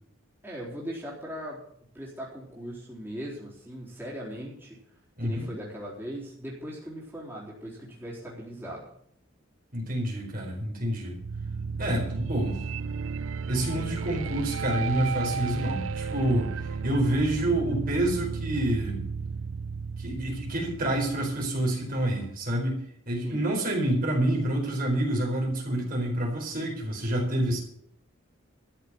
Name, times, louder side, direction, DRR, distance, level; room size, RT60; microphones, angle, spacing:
voice 1, 0.4-1.6 1.9-4.8 5.2-8.8 23.2-23.5 27.4-27.6, equal, 10° right, -6 dB, 4.0 m, -39 dB
voice 2, 5.2-5.5 9.7-11.1 11.8-12.6 13.5-19.0 20.0-27.6, right 1 dB, 45° right, 0 dB, 4.4 m, -28 dB
sound 1, 11.2-22.1, right 5 dB, 85° right, 0.5 m, -34 dB
13.5 x 6.7 x 9.5 m, 0.69 s
head